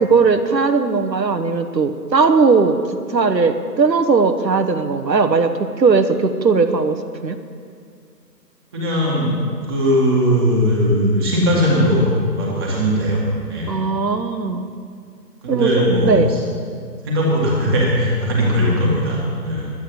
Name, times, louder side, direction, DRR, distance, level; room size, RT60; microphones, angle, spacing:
voice 1, 0.0-2.8 3.1-7.4 13.7-14.7 15.5-16.3, right 4 dB, 85° right, 9 dB, 1.2 m, -18 dB
voice 2, 8.7-9.3 9.7-12.1 12.4-13.2 13.5-13.7 15.4-16.4 17.0-19.7, equal, 15° right, -4 dB, 1.7 m, -18 dB
11.0 x 8.5 x 8.4 m, 2.2 s
figure-of-eight pair, 160°, 50 cm